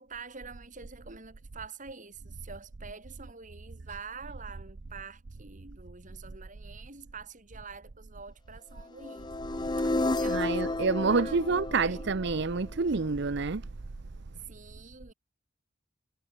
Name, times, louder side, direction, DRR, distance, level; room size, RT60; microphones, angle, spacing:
voice 1, 0.0-9.3 9.7-10.8 11.1-11.4 11.8-12.0 14.4-15.1, right 5 dB, 40° right, 5.2 m, -46 dB
sound 1, 9.0-13.0, left 2 dB, 20° left, 0.7 m, -32 dB
voice 2, 10.3-13.6, right 4 dB, 60° right, 0.7 m, -28 dB
head